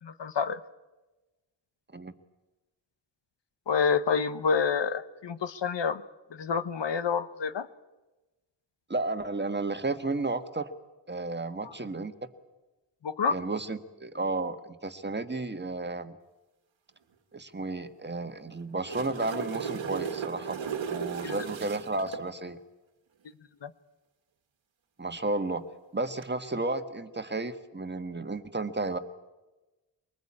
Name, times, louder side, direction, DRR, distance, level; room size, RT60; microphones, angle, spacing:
voice 1, 0.0-0.6 3.7-6.0 6.3-7.7 11.6-11.7 13.0-13.4 21.2-21.3 23.6-23.7, left 6 dB, 70° left, 12 dB, 1.2 m, -28 dB
voice 2, 8.9-10.7 11.1-12.1 13.3-16.2 17.3-22.6 25.0-25.6 25.9-29.0, right 2 dB, 25° right, 8 dB, 1.6 m, -33 dB
sound 1, 18.6-22.2 26.0-26.2, right 7 dB, 85° right, 1.7 m, -35 dB
24.0 x 20.0 x 8.7 m, 1.1 s
wide cardioid pair, 80°, 45 cm